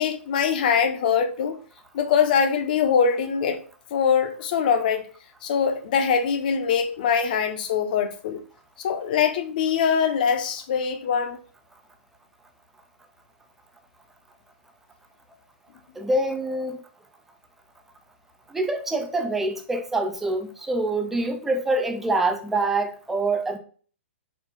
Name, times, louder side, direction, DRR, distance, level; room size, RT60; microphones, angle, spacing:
voice 1, 0.0-1.6 1.9-3.6 3.9-5.1 5.4-8.4 8.8-11.4, left 7 dB, 40° left, 0.6 m, -23 dB
voice 2, 16.0-16.8 18.5-23.6, right 2 dB, 5° right, 0.4 m, -25 dB
4.4 x 2.3 x 4.3 m
hypercardioid pair, 165°, 7 cm